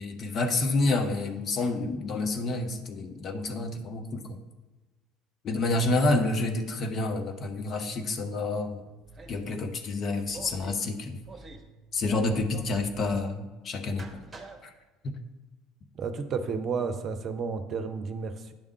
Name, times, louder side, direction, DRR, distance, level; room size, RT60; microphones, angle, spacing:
voice 1, 0.0-4.4 5.4-8.9 9.3-11.2 11.9-14.2 14.6-14.7, left 2 dB, 40° left, 5 dB, 0.9 m, -29 dB
Bass guitar, 5.9-12.1, right 8 dB, 90° right, 0.4 m, -47 dB
sound 1, 9.0-9.5 10.3-10.8 11.2-11.7 12.0-13.2 13.9-14.6, right 3 dB, 25° right, 1.1 m, -45 dB
voice 2, 15.9-18.5, right 5 dB, 40° right, 9 dB, 0.7 m, -32 dB
8.8 x 3.6 x 6.5 m, 1.2 s
figure-of-eight pair, 65°, 0 cm